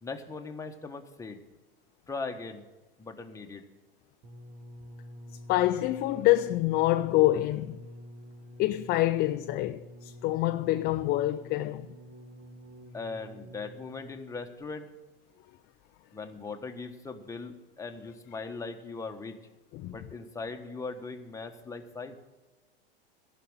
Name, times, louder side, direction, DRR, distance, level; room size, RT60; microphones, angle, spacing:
voice 1, 0.0-1.4 2.1-2.6 3.0-3.6 12.9-14.9 16.1-19.4 19.9-22.2, left 4 dB, 10° left, 1.3 m, -39 dB
sound 1, 4.2-14.4 15.2-15.3, equal, 35° right, 1.7 m, -48 dB
voice 2, 5.5-7.8 8.6-11.9 19.7-20.0, left 16 dB, 35° left, 0.5 m, -26 dB
14.5 x 6.0 x 8.9 m
hypercardioid pair, 105°, 29 cm